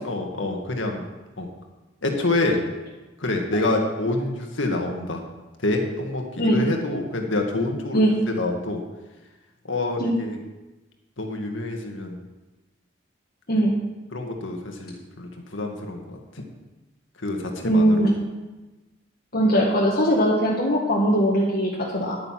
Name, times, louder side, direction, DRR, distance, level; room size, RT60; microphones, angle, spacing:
voice 1, 0.0-1.0 1.4-1.5 2.0-2.6 3.2-5.2 5.6-8.8 9.6-10.4 11.2-12.2 14.1-16.4 17.2-18.1, left 2 dB, 75° left, 2 dB, 1.9 m, -27 dB
voice 2, 17.6-18.2 19.3-22.2, equal, 50° left, -4 dB, 1.7 m, -20 dB
10.5 x 9.5 x 5.9 m, 1.1 s
head